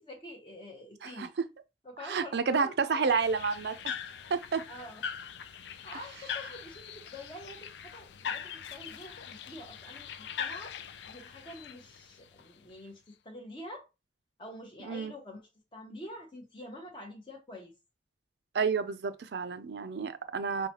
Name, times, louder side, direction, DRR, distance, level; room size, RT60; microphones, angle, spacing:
voice 1, 0.0-1.3 1.8-3.2 4.7-5.0 5.6-10.8 11.1-13.9 14.4-17.7, left 1 dB, 25° left, 0.8 m, -46 dB
voice 2, 1.0-1.5 2.0-3.8 4.3-4.6 14.8-15.1 18.5-20.7, right 5 dB, 70° right, 0.4 m, -30 dB
sound 1, 3.1-12.8, left 7 dB, 75° left, 0.4 m, -41 dB
5.5 x 2.2 x 2.9 m
head